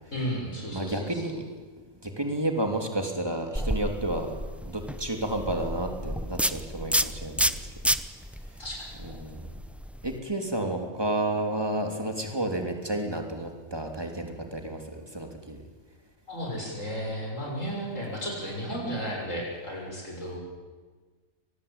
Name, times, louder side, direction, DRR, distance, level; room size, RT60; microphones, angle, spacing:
voice 1, 0.1-1.3 8.6-8.9 16.3-20.4, equal, 70° left, -1 dB, 7.0 m, -34 dB
voice 2, 0.7-1.4 2.0-4.4 4.6-7.7 9.0-9.4 10.0-15.6, right 1 dB, 20° right, 4 dB, 3.3 m, -31 dB
sound 1, 3.5-10.2, equal, ahead, 0.6 m, -30 dB
25.0 x 19.0 x 8.9 m, 1.4 s
omnidirectional pair, 1.4 m